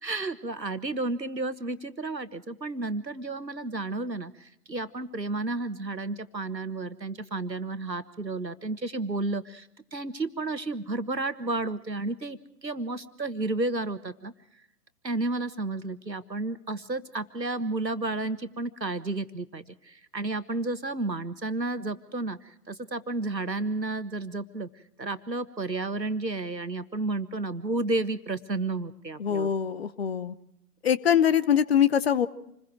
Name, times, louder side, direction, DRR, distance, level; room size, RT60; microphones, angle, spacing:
voice 1, 0.0-14.3 15.0-24.7 25.0-29.5, right 2 dB, 90° right, 13 dB, 1.5 m, -32 dB
voice 2, 29.2-30.3 30.8-32.3, left 9 dB, 40° left, 15 dB, 1.0 m, -23 dB
28.0 x 21.5 x 4.7 m, 0.77 s
figure-of-eight pair, 130°, 49 cm